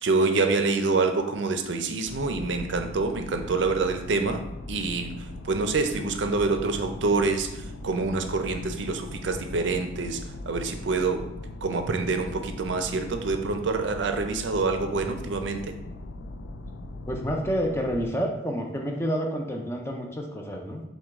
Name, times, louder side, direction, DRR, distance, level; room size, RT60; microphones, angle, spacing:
voice 1, 0.0-4.4 4.7-10.2 10.5-11.3 11.6-15.8, right 3 dB, 75° right, 7 dB, 0.5 m, -26 dB
sound 1, 2.1-18.1, left 2 dB, 80° left, 0.4 m, -39 dB
voice 2, 17.1-20.8, equal, 15° left, 1 dB, 0.4 m, -29 dB
6.1 x 2.2 x 3.5 m, 0.88 s
head